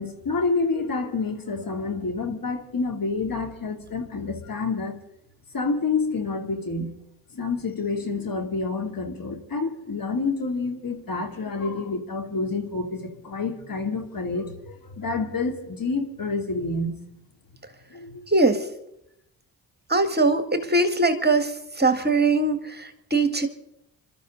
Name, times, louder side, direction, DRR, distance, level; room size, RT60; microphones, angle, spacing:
voice 1, 0.0-5.0 5.5-6.9 7.3-16.9 17.9-18.2, left 3 dB, 45° left, 5 dB, 3.1 m, -28 dB
voice 2, 18.3-18.7 19.9-23.5, right 2 dB, 20° right, 8 dB, 1.8 m, -21 dB
27.5 x 13.0 x 4.0 m, 0.81 s
hypercardioid pair, 50°, 48 cm